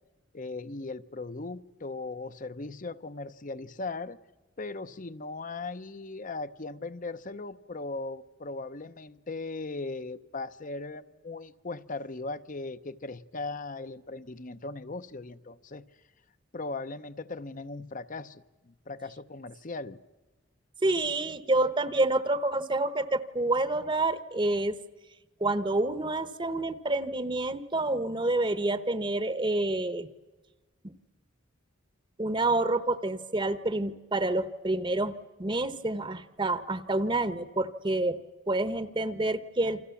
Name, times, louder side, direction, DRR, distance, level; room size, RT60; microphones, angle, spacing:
voice 1, 0.3-4.2 4.6-15.8 16.5-20.0, left 3 dB, 40° left, 0.8 m, -38 dB
voice 2, 20.8-24.8 25.4-30.1 32.2-35.1 35.4-38.1 38.5-39.8, right 2 dB, 25° right, 1.0 m, -28 dB
28.5 x 25.5 x 7.2 m
head